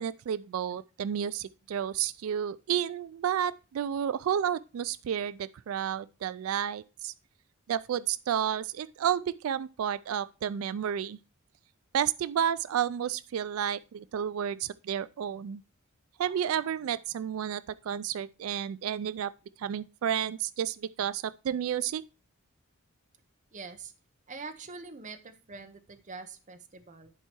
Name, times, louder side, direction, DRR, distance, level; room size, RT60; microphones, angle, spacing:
voice 1, 0.0-7.1 7.7-11.2 11.9-15.6 16.2-19.3 19.6-22.0, right 9 dB, 80° right, 0.3 m, -31 dB
voice 2, 23.5-23.9 24.3-27.1, right 4 dB, 35° right, 0.8 m, -44 dB
11.0 x 4.7 x 4.4 m
head